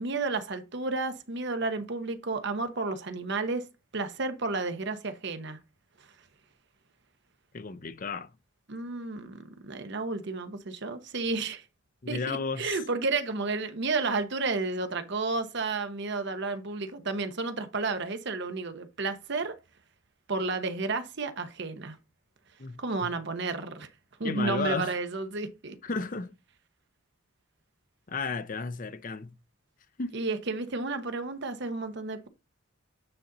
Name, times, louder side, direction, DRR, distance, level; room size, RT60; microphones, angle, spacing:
voice 1, 0.0-3.7 3.9-5.6 8.7-11.6 12.1-19.6 20.3-22.0 22.8-23.9 24.2-25.8 30.1-32.3, right 3 dB, 60° right, 1.0 m, -32 dB
voice 2, 7.5-8.3 12.0-12.8 22.6-23.1 24.2-24.9 25.8-26.3 28.1-29.3 30.0-30.2, left 4 dB, 40° left, 0.6 m, -33 dB
9.0 x 4.1 x 3.9 m
head